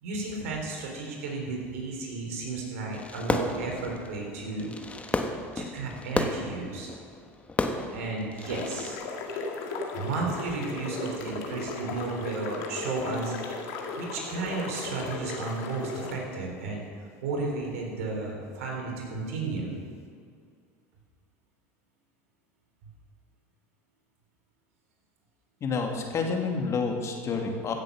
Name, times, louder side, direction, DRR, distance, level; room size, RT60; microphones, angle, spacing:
voice 1, 0.0-4.7 5.5-6.9 7.9-9.0 9.9-13.3 14.0-16.8 17.2-19.7, right 3 dB, 80° right, 0 dB, 3.7 m, -33 dB
Fireworks, 2.9-8.9, left 2 dB, 15° left, 1.2 m, -33 dB
sound 1, 8.4-16.2, left 3 dB, 70° left, 2.2 m, -36 dB
voice 2, 25.6-27.7, left 4 dB, 40° left, 2 dB, 2.3 m, -29 dB
15.5 x 7.8 x 6.3 m, 2.2 s
supercardioid pair, 95°, 8 cm